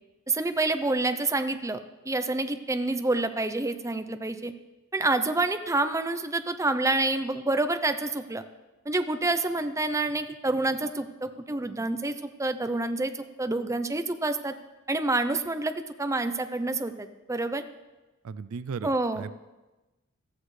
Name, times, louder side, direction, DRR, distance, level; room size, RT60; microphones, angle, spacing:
voice 1, 0.3-1.8 2.1-4.5 4.9-8.4 8.9-14.5 14.9-17.6 18.8-19.2, right 2 dB, 15° right, 9 dB, 0.6 m, -28 dB
voice 2, 18.2-19.4, right 5 dB, 75° right, 15 dB, 0.4 m, -36 dB
14.5 x 14.5 x 3.3 m, 1.1 s
head